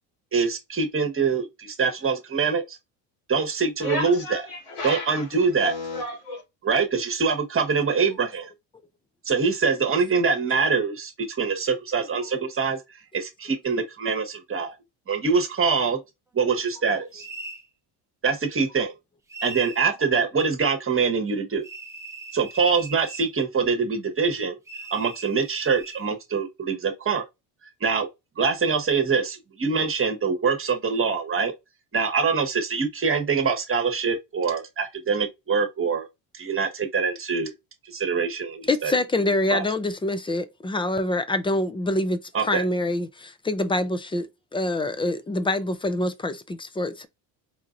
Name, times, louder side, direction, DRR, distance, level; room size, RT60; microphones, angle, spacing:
voice 1, 0.3-2.8 3.3-4.4 4.8-5.7 6.6-8.5 9.2-14.7 15.1-16.0 16.3-17.3 18.2-18.9 19.4-21.7 22.3-24.6 24.9-27.2 27.8-28.1 28.4-31.5 31.9-36.1 36.3-37.5 37.9-38.9 39.5-39.6 42.3-42.6, right 5 dB, 25° right, 1.3 m, -24 dB
voice 2, 3.8-6.4, left 2 dB, 85° left, 2.5 m, -33 dB
sound 1, 17.2-17.7 19.3-19.9 21.6-23.3 24.7-26.1, right 3 dB, 5° right, 0.8 m, -40 dB
voice 3, 38.7-47.1, left 2 dB, 10° left, 0.5 m, -26 dB
4.8 x 2.6 x 2.5 m
supercardioid pair, 95°, 48 cm